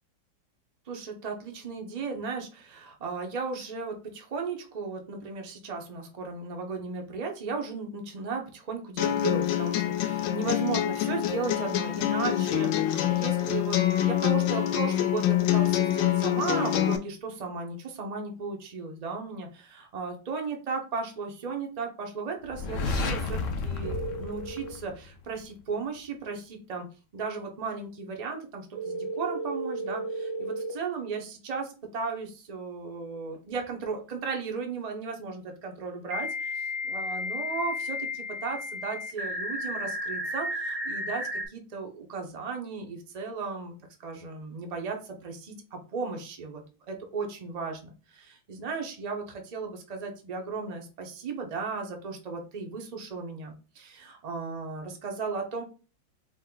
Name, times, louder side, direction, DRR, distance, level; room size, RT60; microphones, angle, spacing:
voice 1, 0.9-26.9 27.1-55.6, right 4 dB, 70° right, 2 dB, 0.3 m, -35 dB
sound 1, 9.0-17.0, left 12 dB, 90° left, 1.3 m, -26 dB
sound 2, 22.5-25.3, left 3 dB, 65° left, 0.7 m, -32 dB
sound 3, 23.8-24.7 28.7-30.7 33.3-33.4 36.1-41.5, left 1 dB, 35° right, 0.6 m, -33 dB
5.1 x 2.2 x 3.8 m, 0.34 s
omnidirectional pair, 2.0 m